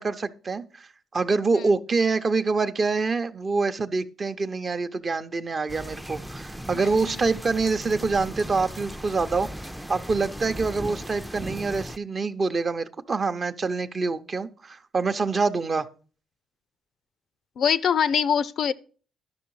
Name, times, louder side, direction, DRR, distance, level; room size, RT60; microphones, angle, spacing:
voice 1, 0.0-15.9, right 4 dB, 40° right, 0.7 m, -26 dB
sound 1, 5.7-12.0, equal, 5° right, 0.4 m, -37 dB
voice 2, 6.7-7.4 17.6-18.7, left 7 dB, 65° left, 0.4 m, -24 dB
11.5 x 6.1 x 4.7 m
cardioid pair, 90°, 0 cm